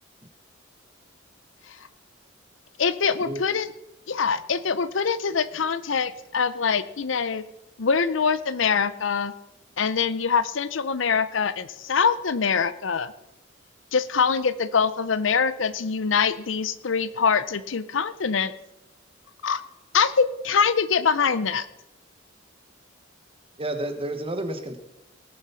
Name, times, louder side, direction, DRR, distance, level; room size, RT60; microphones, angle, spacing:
voice 1, 2.8-3.7 4.1-7.4 7.8-9.3 9.8-13.1 13.9-18.5 19.4-19.6 19.9-21.7, left 6 dB, 70° left, 15 dB, 0.6 m, -24 dB
voice 2, 23.6-24.8, right 1 dB, 30° right, 7 dB, 1.3 m, -30 dB
19.0 x 7.1 x 5.7 m, 0.92 s
head